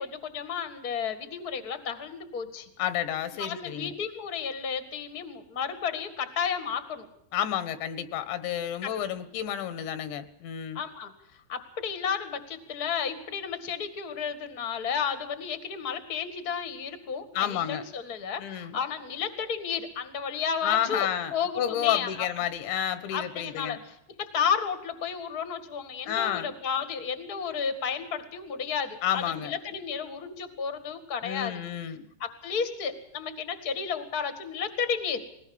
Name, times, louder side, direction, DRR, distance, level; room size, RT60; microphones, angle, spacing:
voice 1, 0.0-2.7 3.4-7.0 8.8-8.9 10.7-11.1 11.5-22.1 23.1-31.6 32.2-35.2, left 6 dB, 45° left, 10 dB, 1.2 m, -32 dB
voice 2, 2.8-3.9 7.3-10.8 17.4-17.8 18.4-18.8 20.6-23.8 26.1-26.5 29.0-29.5 31.2-32.1, left 10 dB, 80° left, 13 dB, 3.7 m, -30 dB
21.0 x 19.0 x 7.1 m, 0.77 s
omnidirectional pair, 5.1 m